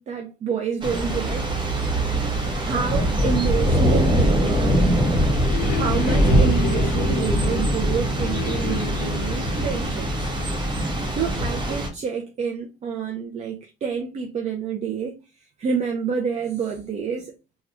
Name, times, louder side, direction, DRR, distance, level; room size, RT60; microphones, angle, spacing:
voice 1, 0.0-1.6 2.3-4.9 5.7-10.3 10.7-15.2 15.6-17.3, right 6 dB, 40° right, 0.5 m, -28 dB
Thunder / Rain, 0.8-11.9, right 1 dB, 25° right, 1.0 m, -22 dB
sound 1, 4.8-11.2, left 8 dB, 60° left, 0.5 m, -33 dB
3.3 x 2.3 x 2.9 m
cardioid pair, 110°, 17 cm